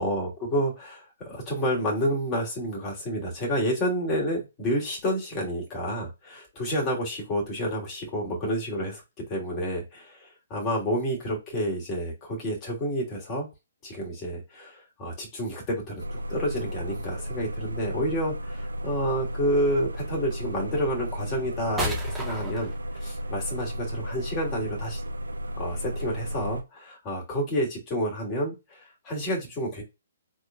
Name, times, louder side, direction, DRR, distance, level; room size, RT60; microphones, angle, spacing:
voice 1, 0.0-9.0 9.3-13.5 13.8-25.0 25.6-29.8, equal, 25° left, -3 dB, 3.0 m, -29 dB
sound 1, 15.7-15.8 16.5-17.1 18.5-19.1 20.0-20.1 20.7-26.1, equal, 5° right, 1.6 m, -37 dB
sound 2, 16.0-26.6, equal, 80° right, 0.7 m, -34 dB
4.7 x 4.0 x 2.6 m, 0.24 s
figure-of-eight pair, 125°, 0 cm